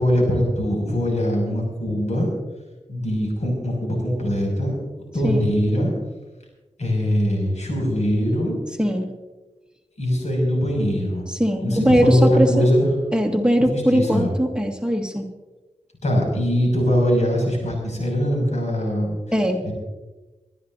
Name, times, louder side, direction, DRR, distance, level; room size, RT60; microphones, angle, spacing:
voice 1, 0.0-2.3 2.9-4.7 5.1-5.9 6.8-8.5 10.0-11.3 11.6-12.9 13.7-14.3 16.0-19.2 19.6-19.7, equal, 70° left, -1 dB, 6.3 m, -21 dB
voice 2, 8.8-9.1 11.3-12.7 13.1-15.3 19.3-19.6, equal, 5° right, 0 dB, 1.9 m, -20 dB
27.0 x 12.5 x 2.7 m, 1.2 s
cardioid pair, 55°, 12 cm